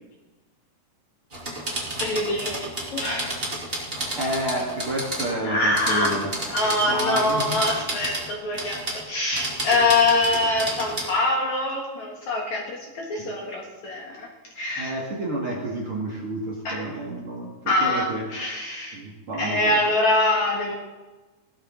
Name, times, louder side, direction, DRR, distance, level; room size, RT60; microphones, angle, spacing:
sound 1, 1.3-5.3 5.7-8.3 8.5-9.0 9.3-11.1, right 1 dB, 15° right, 2.9 m, -31 dB
voice 1, 2.0-3.4 5.4-6.2 6.5-8.8 9.1-14.3 14.6-14.9 16.6-16.8 17.7-19.0 19.4-20.7, left 2 dB, 55° left, -1 dB, 2.5 m, -24 dB
voice 2, 4.2-6.4 6.6-7.6 13.2-13.3 14.7-18.3 18.9-19.8, right 1 dB, 40° right, -3 dB, 2.4 m, -30 dB
17.5 x 13.5 x 3.9 m, 1.2 s
omnidirectional pair, 4.8 m